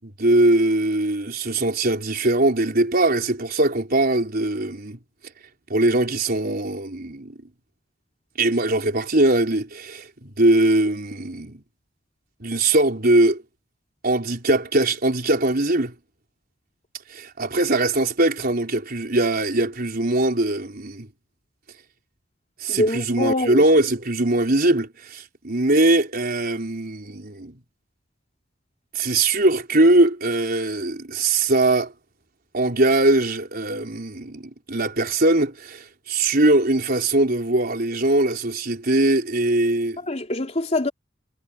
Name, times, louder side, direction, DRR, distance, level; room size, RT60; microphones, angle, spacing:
voice 1, 0.0-5.0 5.7-7.3 8.4-11.6 12.4-13.4 14.0-15.9 17.1-21.1 22.6-27.6 28.9-31.9 32.5-40.0, right 2 dB, 55° right, 4.5 m, -21 dB
voice 2, 22.7-23.6 40.1-40.9, left 1 dB, 35° left, 3.2 m, -24 dB
head